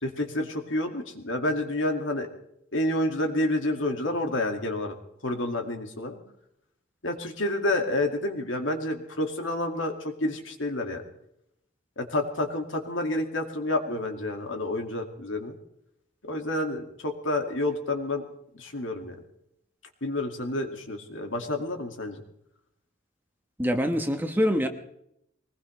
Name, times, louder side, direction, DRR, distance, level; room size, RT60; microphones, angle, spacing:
voice 1, 0.0-2.3 2.7-4.9 5.2-6.2 7.0-11.1 12.0-15.6 16.2-18.2 18.5-19.2 20.0-22.2, left 1 dB, 70° left, 4 dB, 2.2 m, -29 dB
voice 2, 23.6-24.7, equal, 10° right, 5 dB, 1.2 m, -24 dB
22.0 x 20.0 x 3.3 m, 0.76 s
head